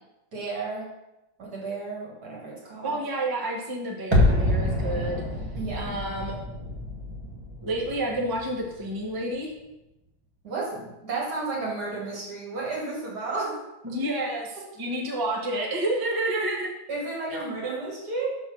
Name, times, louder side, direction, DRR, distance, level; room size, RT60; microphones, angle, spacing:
voice 1, 0.3-0.9 1.4-3.0 5.5-6.0 10.4-13.5 16.9-18.3, right 3 dB, 50° right, -4 dB, 2.5 m, -32 dB
voice 2, 2.8-5.2 5.7-6.4 7.6-9.5 13.8-16.7, right 1 dB, 30° right, -1 dB, 0.3 m, -29 dB
sound 1, 4.1-9.0 9.3-9.4, left 1 dB, 15° right, 1.1 m, -27 dB
6.0 x 4.5 x 6.1 m, 0.94 s
omnidirectional pair, 2.4 m